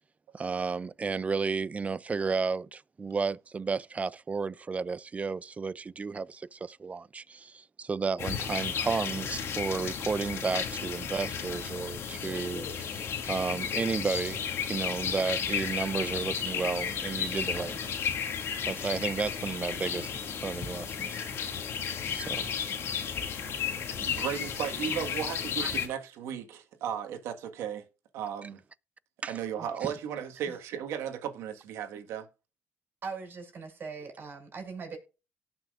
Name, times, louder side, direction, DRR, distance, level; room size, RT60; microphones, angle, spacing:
voice 1, 0.3-17.9 18.7-20.1 20.4-21.6 22.1-22.5 25.6-25.7 29.2-29.3, right 4 dB, 30° right, 0.4 m, -33 dB
sound 1, 8.2-25.9, left 7 dB, 70° left, 2.2 m, -33 dB
voice 2, 24.0-27.8 28.1-28.6 29.3-32.3, right 8 dB, 85° right, 1.6 m, -35 dB
voice 3, 33.0-35.0, right 5 dB, 50° right, 5.9 m, -40 dB
18.0 x 6.0 x 2.5 m
cardioid pair, 80°, 5 cm